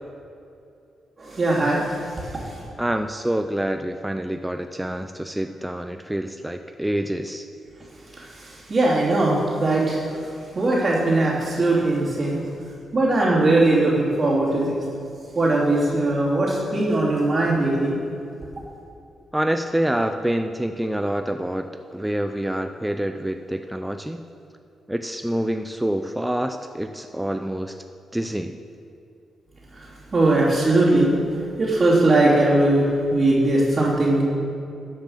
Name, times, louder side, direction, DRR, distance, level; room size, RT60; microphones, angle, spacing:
voice 1, 1.2-1.9 8.3-10.3 10.5-12.4 12.9-14.8 15.3-17.9 29.7-29.9 30.1-31.1 31.6-34.2, right 2 dB, 35° right, -11 dB, 3.0 m, -20 dB
voice 2, 2.8-7.4 19.3-24.2 24.9-27.7 28.1-28.6, right 1 dB, 5° right, 6 dB, 0.4 m, -27 dB
11.0 x 7.5 x 6.6 m, 2.6 s
cardioid pair, 110°, 0 cm